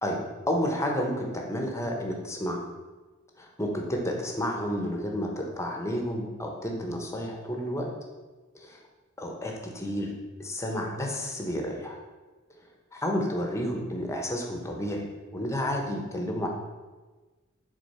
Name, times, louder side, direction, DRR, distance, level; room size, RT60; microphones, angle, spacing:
voice 1, 0.0-2.6 3.4-7.9 8.6-8.8 9.2-10.1 10.4-12.0 12.9-15.1 15.3-16.5, equal, 15° left, 1 dB, 1.0 m, -31 dB
6.9 x 3.8 x 5.5 m, 1.3 s
head